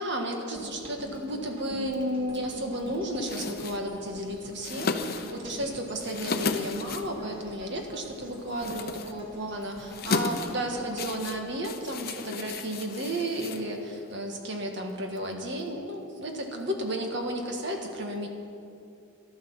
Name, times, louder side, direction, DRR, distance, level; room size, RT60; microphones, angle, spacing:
voice 1, 0.0-18.3, right 1 dB, 55° right, 3 dB, 1.7 m, -33 dB
sound 1, 0.5-12.7 13.1-13.3, equal, 25° right, 2.7 m, -45 dB
sound 2, 3.2-14.1, left 4 dB, 45° left, 0.8 m, -35 dB
13.0 x 12.0 x 7.3 m, 2.5 s
head